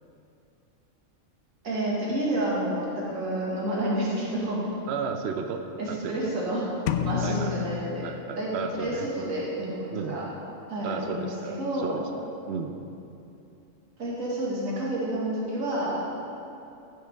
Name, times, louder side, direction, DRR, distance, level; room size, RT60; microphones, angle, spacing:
voice 1, 1.6-4.7 5.8-6.7 7.0-8.1 8.4-8.5 8.8-10.2 10.7-11.9 14.0-16.0, right 1 dB, 85° right, -6 dB, 2.2 m, -29 dB
voice 2, 4.9-6.4 7.2-7.7 8.0-9.1 9.9-10.2 10.8-12.8, right 5 dB, 60° right, 5 dB, 0.8 m, -34 dB
sound 1, 6.9-8.8, left 11 dB, 70° left, 0.9 m, -31 dB
15.0 x 7.8 x 3.4 m, 2.7 s
omnidirectional pair, 1.4 m